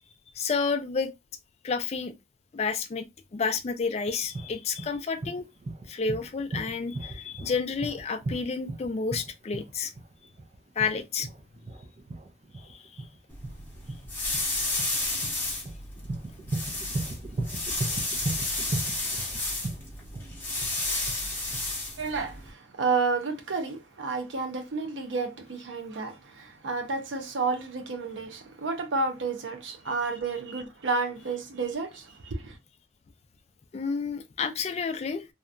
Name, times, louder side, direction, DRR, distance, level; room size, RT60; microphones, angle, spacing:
voice 1, 0.3-1.1 1.6-2.1 2.5-3.0 3.3-5.5 5.9-9.9 10.8-11.3 12.6-13.0 33.7-35.3, left 5 dB, 35° left, 0.3 m, -30 dB
sound 1, 4.0-21.6, right 2 dB, 35° right, 0.4 m, -36 dB
sound 2, 13.3-22.5, left 2 dB, 10° left, 0.8 m, -32 dB
voice 2, 22.0-32.6, right 4 dB, 90° right, 0.6 m, -31 dB
2.8 x 2.2 x 2.4 m
head